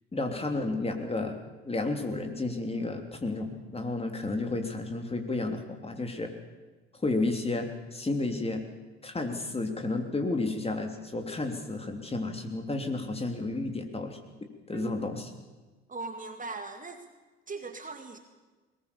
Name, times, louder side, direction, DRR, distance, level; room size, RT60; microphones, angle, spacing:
voice 1, 0.1-1.4 1.6-6.3 7.0-8.6 9.0-14.2 14.7-15.3, left 2 dB, 20° left, 4 dB, 3.3 m, -32 dB
voice 2, 14.7-15.2 15.9-17.1 17.5-18.2, right 3 dB, 25° right, 6 dB, 2.2 m, -39 dB
21.0 x 19.5 x 7.1 m, 1.3 s
hypercardioid pair, 65°, 33 cm